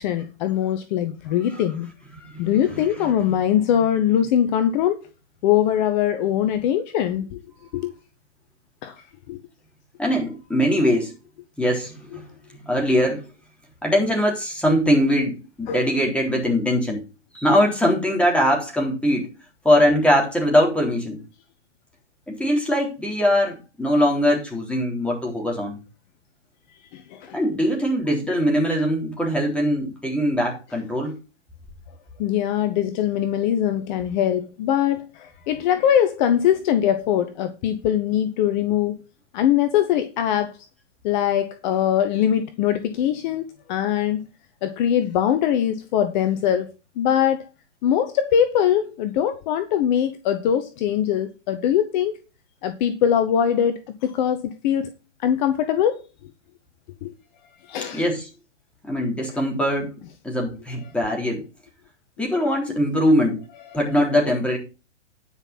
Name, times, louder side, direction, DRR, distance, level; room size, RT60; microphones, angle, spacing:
voice 1, 0.0-1.9 2.4-5.0 5.4-7.4 7.7-7.9 8.8-9.4 15.7-15.8 26.9-27.4 32.2-39.0 39.3-40.6 41.0-44.2 44.6-47.5 47.8-52.2 52.6-54.9 55.2-56.0 57.0-57.1 57.6-58.0, left 10 dB, 40° left, 1.1 m, -22 dB
voice 2, 2.2-3.1 10.0-11.1 11.6-12.1 12.5-13.2 13.8-17.1 17.3-19.3 19.6-21.2 22.3-25.8 27.3-31.2 57.9-58.3 58.8-59.9 60.2-61.4 62.2-63.4 63.7-64.6, equal, 5° left, 3.5 m, -21 dB
10.5 x 5.5 x 5.8 m
hypercardioid pair, 125°, 35 cm